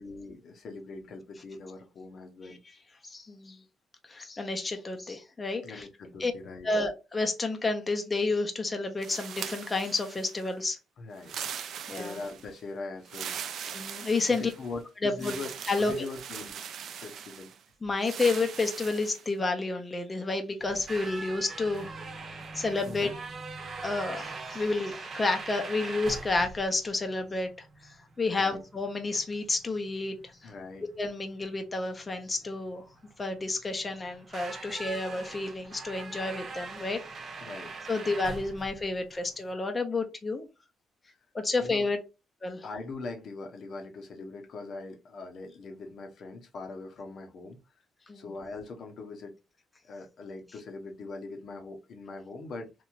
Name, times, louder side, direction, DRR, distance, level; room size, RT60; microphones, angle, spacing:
voice 1, 0.0-2.6 5.6-6.7 11.0-11.4 11.9-13.4 14.3-15.5 15.8-16.6 17.0-17.5 22.8-23.1 28.4-28.6 30.4-30.9 37.4-37.7 41.6-41.9 42.6-47.6 48.1-49.4 49.9-52.8, left 3 dB, 60° left, 0.9 m, -41 dB
voice 2, 3.0-3.6 4.1-5.8 6.2-6.3 6.6-10.8 11.9-12.2 13.7-14.5 15.0-15.4 15.7-16.1 17.8-21.9 22.2-23.1 23.8-30.2 30.4-30.5 31.0-32.8 33.2-37.0 37.9-40.5 41.3-42.0 42.4-42.7 48.1-48.2, left 3 dB, 25° left, 0.6 m, -30 dB
sound 1, 9.0-10.5 11.2-12.5 13.0-14.7 15.2-17.6 18.0-19.3, right 8 dB, 70° right, 0.4 m, -40 dB
sound 2, 20.6-39.5, right 3 dB, 50° right, 0.9 m, -42 dB
3.1 x 2.6 x 2.5 m
cardioid pair, 90°, 0 cm